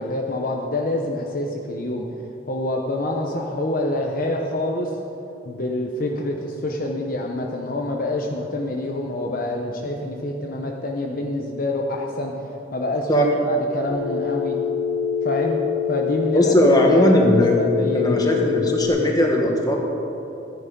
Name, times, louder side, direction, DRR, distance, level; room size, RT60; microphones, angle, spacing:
voice 1, 0.0-2.2 2.5-4.9 5.5-14.6 15.2-15.6 15.9-16.5 17.3-18.4, left 1 dB, 50° left, 0 dB, 0.9 m, -27 dB
Telephone, 13.9-18.9, left 8 dB, 85° left, 2.2 m, -25 dB
voice 2, 16.3-17.5 17.9-19.8, equal, 20° left, 0 dB, 1.5 m, -18 dB
13.5 x 9.9 x 5.3 m, 2.9 s
head